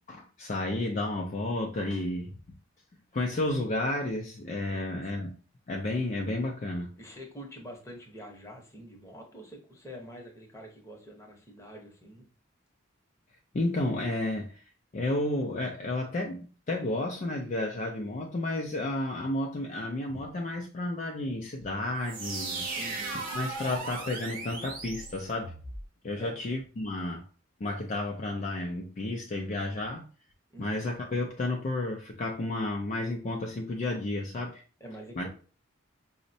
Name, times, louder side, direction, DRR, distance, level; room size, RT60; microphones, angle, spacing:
voice 1, 0.0-2.4 3.1-5.3 5.7-6.9 13.5-14.6 14.9-22.6 23.3-25.5 26.0-27.2 27.6-30.1 30.6-34.6 35.2-35.3, left 2 dB, 40° left, 0.4 m, -32 dB
voice 2, 4.7-5.3 7.0-12.3 22.8-23.3 26.2-26.4 30.5-30.9 34.8-35.3, equal, 15° left, 0.8 m, -46 dB
sound 1, 22.0-25.8, right 3 dB, 45° right, 0.8 m, -37 dB
5.0 x 2.1 x 2.6 m
head